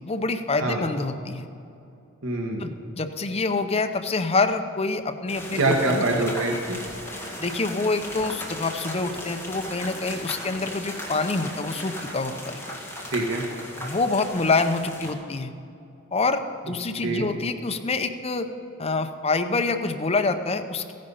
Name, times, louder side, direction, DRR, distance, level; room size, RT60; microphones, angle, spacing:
voice 1, 0.0-1.5 2.6-6.1 7.4-12.6 13.8-15.5 16.1-18.5 18.8-20.9, left 3 dB, 30° left, 7 dB, 0.7 m, -26 dB
voice 2, 2.2-2.7 5.5-6.8 13.1-13.4 17.0-17.3, right 2 dB, 75° right, 1 dB, 1.6 m, -24 dB
sound 1, 5.3-15.1, left 1 dB, 10° left, 1.8 m, -36 dB
14.5 x 10.5 x 5.6 m, 2.6 s
head